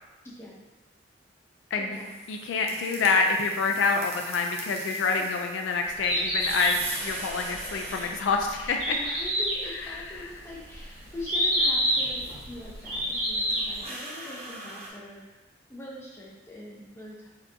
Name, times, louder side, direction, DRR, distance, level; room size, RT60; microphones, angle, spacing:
voice 1, 0.2-0.6 1.8-2.1 5.2-5.3 8.9-15.4 15.7-17.3, left 1 dB, 15° left, -5 dB, 0.6 m, -43 dB
sound 1, 1.9-14.9, right 2 dB, 35° right, 0.5 m, -42 dB
voice 2, 2.3-9.0 9.8-10.3, left 4 dB, 75° left, 3 dB, 0.3 m, -27 dB
Bird, 5.9-13.8, equal, 55° right, 1.4 m, -29 dB
4.3 x 2.5 x 2.7 m, 1.1 s
head